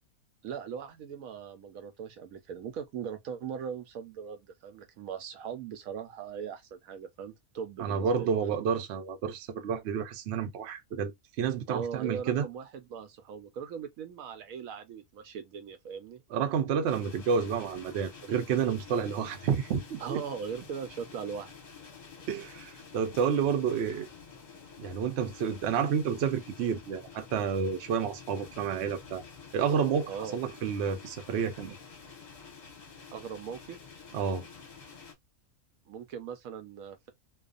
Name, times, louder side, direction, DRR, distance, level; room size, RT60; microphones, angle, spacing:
voice 1, 0.4-8.3 11.7-16.2 20.0-21.5 30.1-30.6 33.1-33.8 35.9-37.1, right 7 dB, 80° right, 1.0 m, -39 dB
voice 2, 7.8-12.5 16.3-20.2 22.3-24.1 24.8-29.2 29.5-31.8 34.1-34.5, right 7 dB, 60° right, 0.8 m, -30 dB
sound 1, 16.9-35.1, left 5 dB, 40° left, 0.8 m, -49 dB
2.4 x 2.3 x 2.4 m
omnidirectional pair, 1.5 m